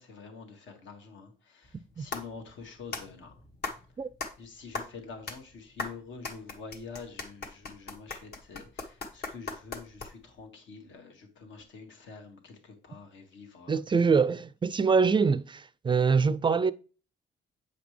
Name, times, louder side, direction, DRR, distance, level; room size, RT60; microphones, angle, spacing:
voice 1, 0.0-3.3 4.4-13.8, left 5 dB, 70° left, 1.7 m, -47 dB
sound 1, 1.6-10.4, left 3 dB, 55° left, 1.4 m, -40 dB
voice 2, 13.7-16.7, right 5 dB, 25° right, 0.4 m, -24 dB
8.2 x 5.1 x 3.2 m
cardioid pair, 90°, 20 cm